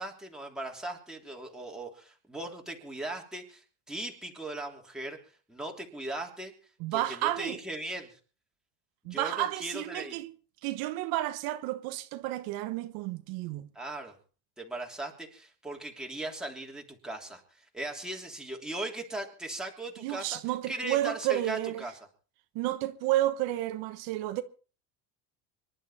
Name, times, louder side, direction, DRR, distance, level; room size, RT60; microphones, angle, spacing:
voice 1, 0.0-5.2 5.5-6.5 6.9-8.2 9.1-10.2 13.7-14.1 14.6-20.4 20.7-21.9, right 2 dB, ahead, 3.0 m, -38 dB
voice 2, 6.8-7.6 9.0-10.3 10.6-13.7 20.0-21.8 22.5-24.4, right 15 dB, 70° right, 1.3 m, -31 dB
25.0 x 11.5 x 4.2 m
cardioid pair, 145°, 38 cm